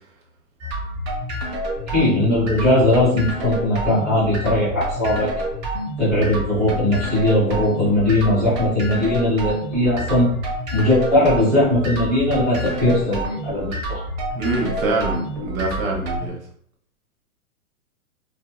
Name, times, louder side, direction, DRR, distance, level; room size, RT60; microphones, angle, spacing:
sound 1, 0.6-16.3, equal, 30° right, 0.8 m, -28 dB
voice 1, 1.9-5.3 6.0-10.2 10.7-14.0, left 1 dB, 5° right, -14 dB, 0.3 m, -19 dB
voice 2, 14.4-16.4, right 3 dB, 70° right, -1 dB, 0.9 m, -24 dB
2.7 x 2.4 x 2.2 m, 0.63 s
hypercardioid pair, 135°, 44 cm